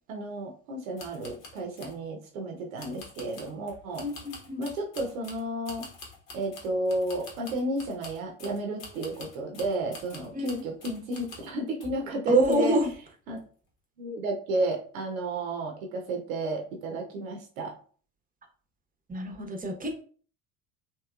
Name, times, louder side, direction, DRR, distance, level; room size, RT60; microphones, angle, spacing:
voice 1, 0.1-4.0 4.6-5.9 6.3-12.8 13.3-13.4 14.0-17.7, right 1 dB, 80° right, 1 dB, 0.7 m, -32 dB
sound 1, 1.0-2.0 2.8-11.6 11.8-12.1 12.5-12.9 13.3-13.4, left 3 dB, 70° left, 1.2 m, -47 dB
voice 2, 4.0-4.6 10.3-10.6 12.3-12.9 19.1-20.0, right 2 dB, 20° right, 2 dB, 0.8 m, -26 dB
3.0 x 3.0 x 2.3 m, 0.43 s
hypercardioid pair, 65°, 41 cm